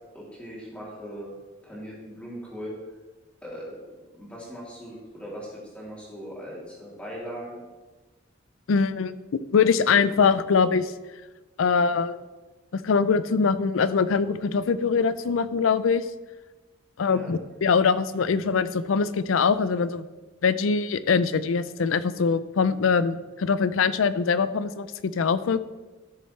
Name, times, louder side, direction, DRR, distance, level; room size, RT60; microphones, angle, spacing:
voice 1, 0.1-1.3 1.6-2.7 3.4-3.8 4.2-7.6 17.0-17.3, equal, 5° left, -6 dB, 2.9 m, -39 dB
voice 2, 8.7-9.1 9.5-10.9 11.6-12.2 12.7-16.0 17.0-20.1 20.4-25.6, left 5 dB, 85° left, 14 dB, 0.4 m, -23 dB
13.0 x 6.6 x 3.2 m, 1.2 s
head